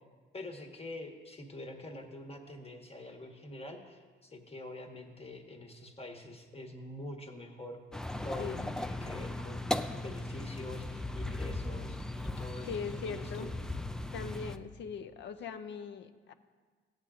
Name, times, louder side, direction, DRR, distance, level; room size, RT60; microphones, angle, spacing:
voice 1, 0.3-7.8 8.2-9.6 10.0-13.5, left 1 dB, 30° left, 3 dB, 1.3 m, -45 dB
sound 1, 7.9-14.6, left 1 dB, 5° left, 0.3 m, -37 dB
voice 2, 12.7-13.5 14.1-16.3, left 6 dB, 65° left, 10 dB, 0.6 m, -40 dB
14.5 x 8.1 x 2.5 m, 1.5 s
cardioid pair, 90°, 20 cm